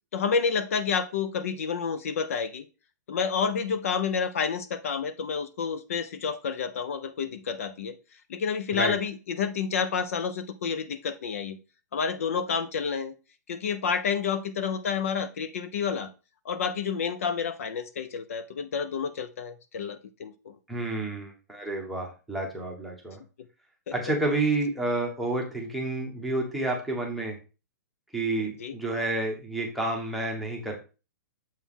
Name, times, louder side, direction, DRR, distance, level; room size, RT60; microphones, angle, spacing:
voice 1, 0.1-2.6 3.1-8.0 8.3-11.6 11.9-13.1 13.5-16.1 16.5-20.5 23.9-24.0 28.6-28.8, left 6 dB, 50° left, 12 dB, 0.6 m, -29 dB
voice 2, 20.7-23.2 23.9-27.4 28.1-30.8, right 2 dB, ahead, 1 dB, 1.0 m, -29 dB
7.2 x 4.4 x 3.6 m, 0.32 s
hypercardioid pair, 175°, 9 cm